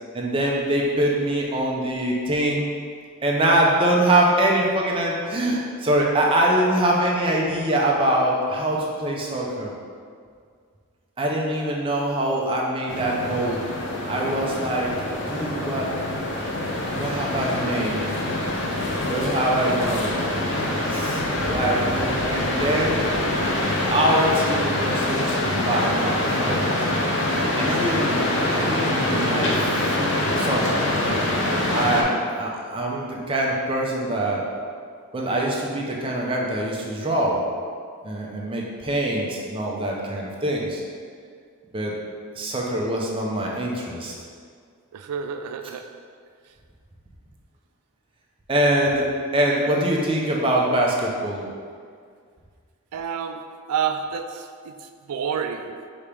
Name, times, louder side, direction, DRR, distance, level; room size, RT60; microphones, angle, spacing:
voice 1, 0.1-2.7 3.2-9.7 11.2-13.6 14.1-14.9 15.3-15.9 16.9-18.0 19.1-20.2 20.9-21.2 21.5-23.0 23.9-26.7 27.6-30.9 31.7-34.4 35.1-37.4 38.0-40.8 41.7-41.9 42.3-44.1 48.5-49.1 49.3-51.5, right 1 dB, 25° right, -2 dB, 0.5 m, -24 dB
sound 1, 12.9-32.0, left 1 dB, 55° left, 0.6 m, -25 dB
voice 2, 44.9-46.0 46.5-46.6 52.9-55.9, right 7 dB, 85° right, 7 dB, 0.3 m, -30 dB
5.0 x 2.9 x 3.3 m, 2.1 s
head